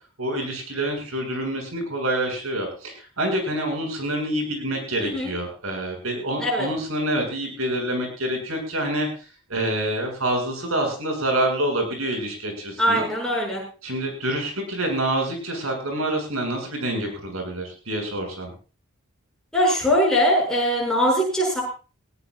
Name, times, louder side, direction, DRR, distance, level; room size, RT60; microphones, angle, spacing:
voice 1, 0.2-13.1 13.8-18.5, right 1 dB, 85° right, 2 dB, 7.4 m, -27 dB
voice 2, 5.0-5.3 6.4-6.7 12.8-13.6 19.5-21.6, equal, 5° left, -3 dB, 7.5 m, -21 dB
20.0 x 17.5 x 2.6 m, 0.37 s
head